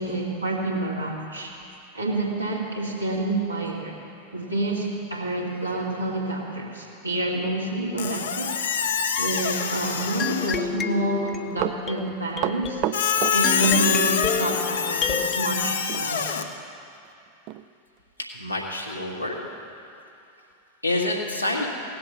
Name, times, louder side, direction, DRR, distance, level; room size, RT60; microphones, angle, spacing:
voice 1, 0.0-1.5 1.9-4.0 4.3-8.9 9.2-16.4, right 2 dB, 90° right, -4 dB, 2.5 m, -28 dB
Squeak, 8.0-10.7 12.9-16.4, left 7 dB, 65° left, 0.8 m, -25 dB
sound 1, 10.2-15.4, left 7 dB, 25° left, 0.6 m, -31 dB
Run, 11.3-14.2 14.5-14.6 15.9-16.1 16.4-16.5 17.0-17.1 17.5-17.6 18.2-18.3, right 14 dB, 40° right, 0.4 m, -30 dB
voice 2, 18.3-19.4 20.8-21.7, left 2 dB, 85° left, -2 dB, 1.9 m, -27 dB
17.5 x 7.8 x 6.9 m, 2.6 s
figure-of-eight pair, 90°, 0 cm